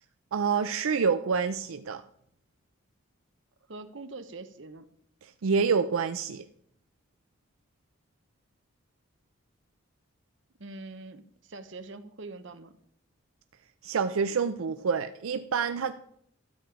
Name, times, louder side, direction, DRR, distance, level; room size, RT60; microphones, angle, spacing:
voice 1, 0.3-2.0 5.2-6.5 13.8-15.9, right 5 dB, 85° right, 10 dB, 0.5 m, -27 dB
voice 2, 3.7-4.9 10.6-12.8, right 3 dB, 65° right, 10 dB, 0.9 m, -43 dB
13.0 x 7.6 x 5.0 m, 0.68 s
head